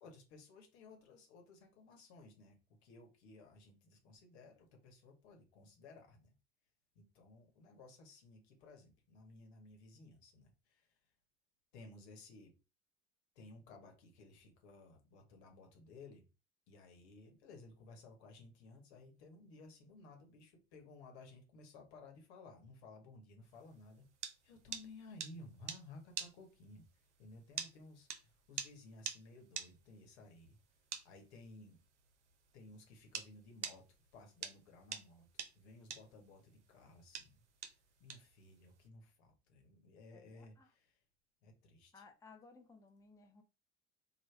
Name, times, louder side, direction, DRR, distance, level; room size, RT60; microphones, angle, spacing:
voice 1, 0.0-6.3 6.9-10.9 11.7-12.5 13.4-16.2 16.7-24.0 24.4-26.8 27.2-30.6 31.0-31.8 32.5-33.8 34.1-35.3 35.5-37.4 38.0-40.9 41.4-42.0, left 2 dB, 70° left, 1.0 m, -57 dB
sound 1, 23.6-33.3 33.6-38.9, right 8 dB, 85° right, 0.5 m, -45 dB
voice 2, 40.1-40.7 41.9-43.4, left 4 dB, 10° left, 0.6 m, -60 dB
3.3 x 2.1 x 3.2 m
figure-of-eight pair, 60°, 34 cm